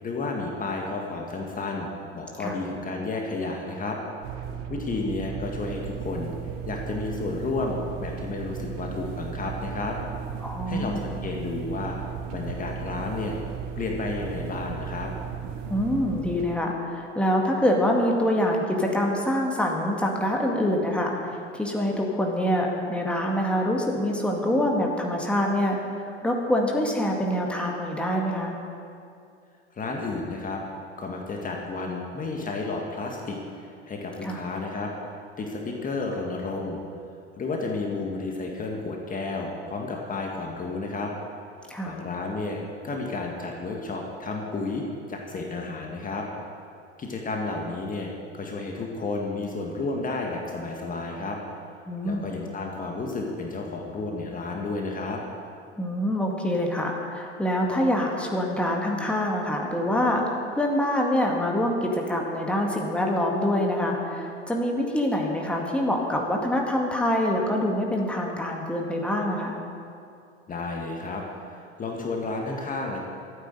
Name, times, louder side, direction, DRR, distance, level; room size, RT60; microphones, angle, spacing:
voice 1, 0.0-4.0 4.7-6.3 6.7-10.0 10.7-12.0 12.3-13.4 13.8-15.1 29.7-30.6 31.0-34.9 35.4-36.8 37.4-41.1 41.9-44.8 45.1-46.3 47.0-51.4 52.0-55.2 70.5-71.2 71.5-73.0, left 3 dB, 20° left, 0 dB, 1.8 m, -32 dB
sound 1, 4.2-16.6, right 7 dB, 45° right, 1.0 m, -35 dB
voice 2, 10.4-11.0 15.7-28.6 34.2-34.4 41.7-42.0 51.9-52.3 55.8-60.2 60.5-69.6, left 1 dB, 5° left, 0 dB, 2.0 m, -25 dB
13.5 x 9.2 x 7.9 m, 2.4 s
figure-of-eight pair, 80°, 36 cm